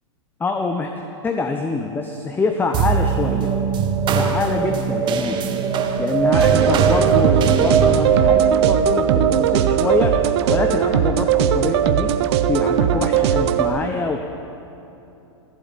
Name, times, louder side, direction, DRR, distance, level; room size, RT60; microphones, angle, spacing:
voice 1, 0.4-3.5 4.1-5.5 6.0-10.2 10.5-12.1 12.5-14.2, left 3 dB, 10° left, 5 dB, 0.7 m, -25 dB
sound 1, 2.7-11.5, right 6 dB, 30° right, 1.2 m, -21 dB
sound 2, 6.3-13.7, right 9 dB, 55° right, 0.8 m, -19 dB
15.5 x 7.9 x 9.6 m, 2.9 s
hypercardioid pair, 125°, 16 cm